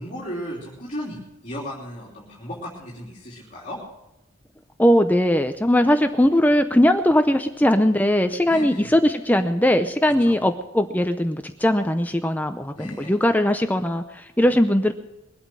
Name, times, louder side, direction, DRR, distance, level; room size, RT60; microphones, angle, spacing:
voice 1, 0.0-3.8 8.4-8.8 10.2-10.4 12.8-13.1, equal, 35° left, -6 dB, 3.2 m, -35 dB
voice 2, 4.8-14.9, left 1 dB, 10° left, 8 dB, 0.6 m, -20 dB
22.0 x 8.7 x 6.2 m, 0.93 s
head